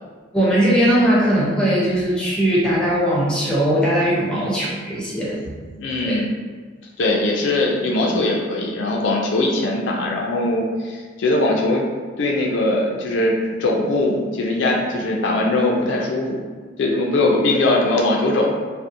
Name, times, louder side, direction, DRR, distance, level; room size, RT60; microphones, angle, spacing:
voice 1, 0.3-5.5 6.0-6.2, equal, 5° left, -7 dB, 0.5 m, -19 dB
voice 2, 5.8-6.3 7.0-11.8 12.2-13.3 13.6-16.4 16.8-18.5, left 2 dB, 70° left, -1 dB, 0.4 m, -20 dB
2.5 x 2.0 x 2.5 m, 1.5 s
head